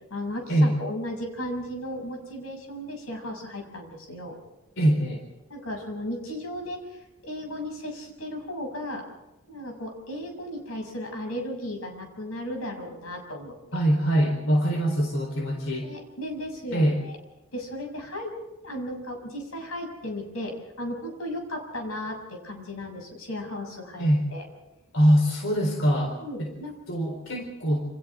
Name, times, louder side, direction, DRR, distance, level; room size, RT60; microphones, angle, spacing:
voice 1, 0.1-4.4 5.5-9.0 9.5-13.6 15.8-17.2 17.5-18.4 18.6-24.4 26.2-26.7 27.3-27.4, left 1 dB, 85° left, 2 dB, 6.9 m, -35 dB
voice 2, 4.8-5.2 13.7-15.9 16.7-17.0 24.0-24.2 24.9-26.5 26.9-27.8, equal, 65° left, 2 dB, 4.1 m, -23 dB
28.5 x 28.0 x 3.7 m, 0.94 s
head